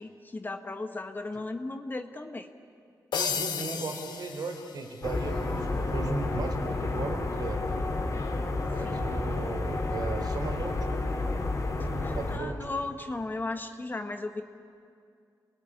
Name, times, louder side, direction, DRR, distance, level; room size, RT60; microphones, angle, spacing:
voice 1, 0.0-2.5 8.8-9.0 12.0-14.4, left 2 dB, 25° left, 6 dB, 1.3 m, -36 dB
sound 1, 3.1-5.2, left 6 dB, 85° left, 1.5 m, -34 dB
voice 2, 3.1-7.7 8.7-11.0 11.8-12.7, right 3 dB, 65° right, 4 dB, 4.1 m, -36 dB
sound 2, 5.0-12.4, left 2 dB, 45° left, 3.3 m, -30 dB
28.0 x 21.0 x 9.9 m, 2.3 s
wide cardioid pair, 105°, 7 cm